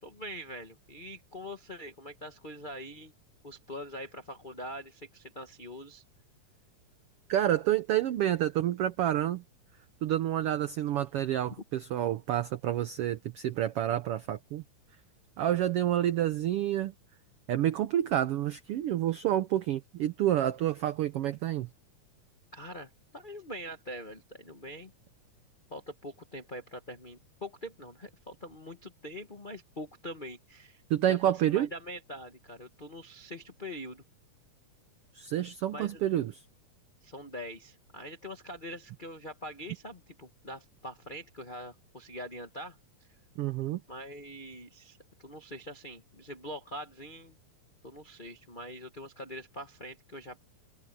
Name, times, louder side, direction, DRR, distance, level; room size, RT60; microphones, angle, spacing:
voice 1, 0.0-3.1 3.4-6.0 22.5-24.9 25.7-34.0 35.7-36.0 37.0-42.7 43.9-47.3 47.8-50.4, equal, 70° left, 0.4 m, -43 dB
voice 2, 7.3-9.4 10.0-14.6 15.4-16.9 17.5-21.7 30.9-31.7 35.1-36.4 43.4-43.8, right 12 dB, 90° right, 1.2 m, -29 dB
omnidirectional pair, 3.6 m